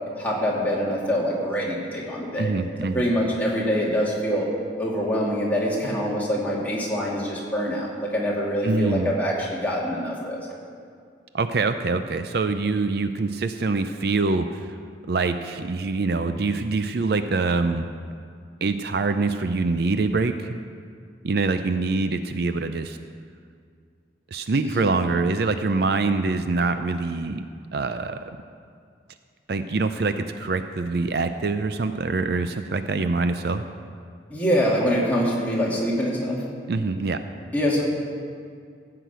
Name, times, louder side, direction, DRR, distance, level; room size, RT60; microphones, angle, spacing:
voice 1, 0.1-2.5 2.9-4.5 4.8-10.4 24.7-24.9 34.3-36.4 37.5-37.8, equal, 10° left, -5 dB, 2.4 m, -25 dB
voice 2, 2.4-3.0 8.6-9.1 11.3-14.8 15.1-17.8 18.6-20.6 21.2-23.0 24.3-27.4 27.7-28.2 29.5-33.6 36.7-37.2, right 3 dB, 60° right, 9 dB, 0.5 m, -24 dB
15.0 x 5.9 x 8.1 m, 2.2 s
head